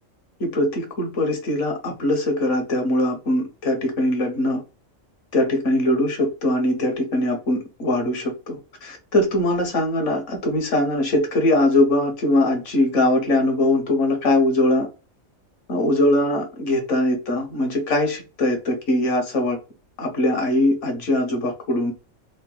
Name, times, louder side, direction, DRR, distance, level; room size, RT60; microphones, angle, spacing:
voice 1, 0.4-4.6 5.3-14.9 15.7-19.6 20.0-21.9, left 1 dB, 65° left, 1.3 m, -21 dB
3.9 x 2.1 x 2.3 m
omnidirectional pair, 1.4 m